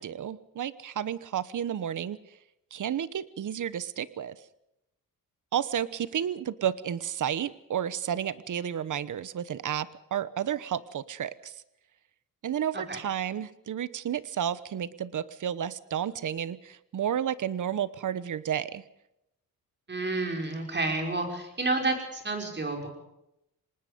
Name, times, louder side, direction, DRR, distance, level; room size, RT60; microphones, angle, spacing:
voice 1, 0.0-2.2 2.7-4.4 5.5-11.6 12.4-18.8, right 9 dB, 60° right, 16 dB, 1.1 m, -31 dB
voice 2, 19.9-22.9, right 2 dB, 30° right, 3 dB, 5.6 m, -30 dB
26.5 x 19.5 x 5.3 m, 0.84 s
wide cardioid pair, 130°, 35 cm